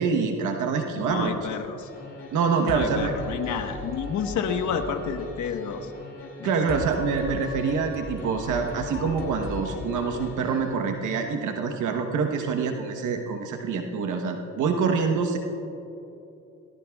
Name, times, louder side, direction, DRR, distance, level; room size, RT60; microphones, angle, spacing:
voice 1, 0.0-1.3 2.3-3.1 6.4-15.4, right 5 dB, 80° right, 4 dB, 1.1 m, -26 dB
voice 2, 0.9-1.9 2.6-5.9 6.4-6.5, left 7 dB, 70° left, 6 dB, 1.3 m, -30 dB
sound 1, 1.8-11.0, left 3 dB, 45° left, 2.5 m, -38 dB
20.0 x 19.0 x 2.4 m, 2.9 s
cardioid pair, 90°, 30 cm